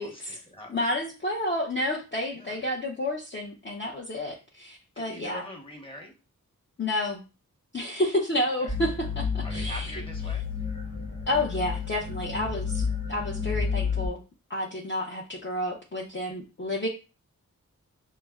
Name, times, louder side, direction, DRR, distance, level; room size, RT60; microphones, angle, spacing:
voice 1, 0.0-0.7 2.3-2.6 5.0-6.1 8.4-8.7 9.4-10.4, equal, 15° left, 0 dB, 1.1 m, -43 dB
voice 2, 0.7-5.5 6.8-7.2 7.7-9.9 11.3-14.2 14.5-16.9, left 1 dB, 35° left, -3 dB, 0.7 m, -30 dB
sound 1, 8.7-14.1, left 5 dB, 60° left, 1.3 m, -31 dB
5.6 x 2.1 x 2.3 m, 0.31 s
wide cardioid pair, 80°, 34 cm